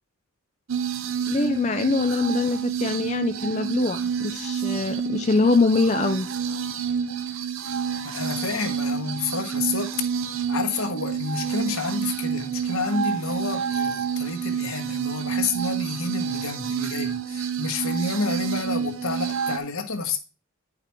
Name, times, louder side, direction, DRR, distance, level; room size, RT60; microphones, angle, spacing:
sound 1, 0.7-19.6, right 7 dB, 70° right, 0.7 m, -29 dB
voice 1, 1.3-6.3, left 3 dB, 30° left, 0.4 m, -23 dB
voice 2, 8.0-9.9 10.5-20.2, left 4 dB, 75° left, 1.3 m, -29 dB
9.8 x 5.0 x 4.5 m
head